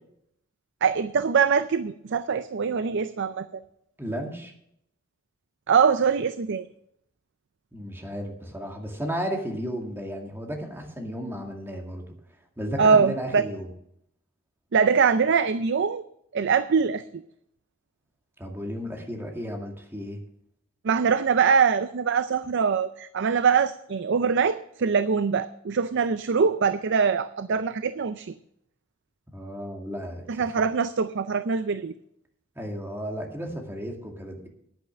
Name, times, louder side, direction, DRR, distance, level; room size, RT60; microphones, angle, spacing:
voice 1, 0.8-3.6 5.7-6.7 12.8-13.4 14.7-16.0 16.3-17.2 20.8-28.3 30.3-31.9, right 6 dB, 60° right, 12 dB, 0.5 m, -23 dB
voice 2, 4.0-4.5 7.7-12.0 12.6-13.7 18.4-20.2 29.3-30.6 32.6-34.5, equal, 10° right, 2 dB, 2.1 m, -34 dB
10.0 x 8.9 x 6.4 m, 0.72 s
head